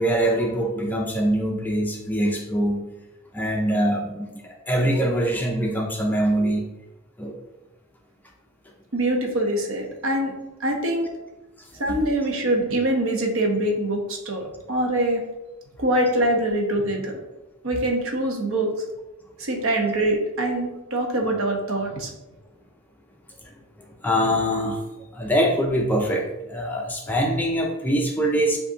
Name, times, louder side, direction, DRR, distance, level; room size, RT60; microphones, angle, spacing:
voice 1, 0.0-2.8 3.3-6.6 7.2-7.3 11.9-12.0 24.0-24.8 25.1-28.6, equal, 10° left, 0 dB, 0.4 m, -23 dB
voice 2, 8.9-10.3 10.6-11.1 11.8-15.2 15.8-17.2 17.6-18.7 19.4-22.1, right 1 dB, 60° right, 2 dB, 0.8 m, -24 dB
7.3 x 2.6 x 2.7 m, 1.0 s
head